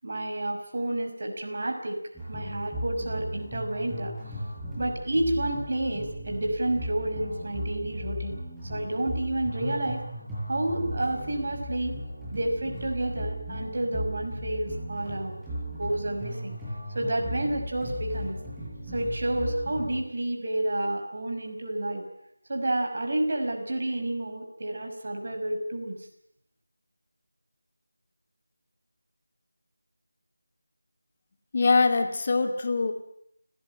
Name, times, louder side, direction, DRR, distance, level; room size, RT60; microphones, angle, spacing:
voice 1, 0.0-2.0 2.3-4.1 4.8-8.4 8.7-10.0 10.5-12.0 12.3-15.3 15.8-16.6 16.9-18.4 18.9-22.0 22.5-26.0, right 1 dB, 45° right, 3 dB, 6.0 m, -30 dB
sound 1, 2.1-20.0, equal, 5° right, 6.9 m, -36 dB
voice 2, 31.5-32.9, left 4 dB, 30° left, 6 dB, 2.6 m, -23 dB
29.5 x 18.0 x 9.1 m, 0.74 s
figure-of-eight pair, 165°, 0 cm